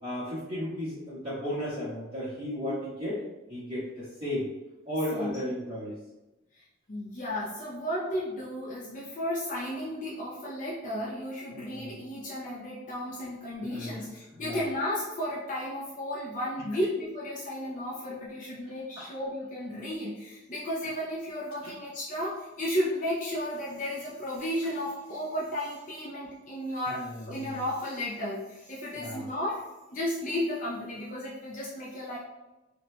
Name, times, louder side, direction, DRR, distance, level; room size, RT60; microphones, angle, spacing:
voice 1, 0.0-3.2 3.5-4.5 4.8-6.0 11.5-11.9 13.6-14.1 14.3-14.6 19.0-19.1 21.6-21.7 26.9-27.6 28.9-29.3, left 1 dB, 30° right, -15 dB, 1.4 m, -34 dB
voice 2, 6.9-32.2, left 1 dB, 40° left, -6 dB, 0.6 m, -34 dB
4.2 x 2.7 x 2.2 m, 1.1 s
head